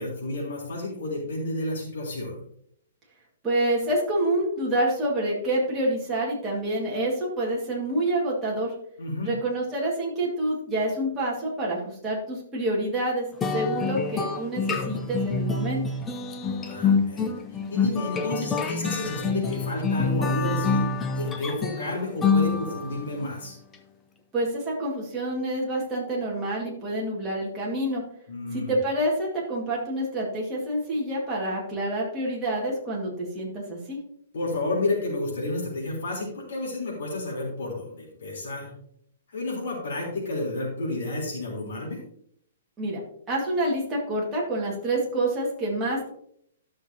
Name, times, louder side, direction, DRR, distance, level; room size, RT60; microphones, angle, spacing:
voice 1, 0.0-2.4 9.0-9.4 16.4-17.3 17.7-20.9 21.1-23.6 28.3-28.7 34.3-38.7 39.3-42.0, left 2 dB, 65° left, -3 dB, 3.6 m, -31 dB
voice 2, 3.4-8.7 9.2-13.3 13.5-15.8 24.3-28.0 28.5-34.0 42.8-43.0 43.3-46.1, right 1 dB, 10° right, -5 dB, 1.9 m, -27 dB
sound 1, 13.4-23.1, left 4 dB, 10° left, 0.5 m, -26 dB
12.5 x 6.4 x 2.8 m, 0.69 s
hypercardioid pair, 175°, 0 cm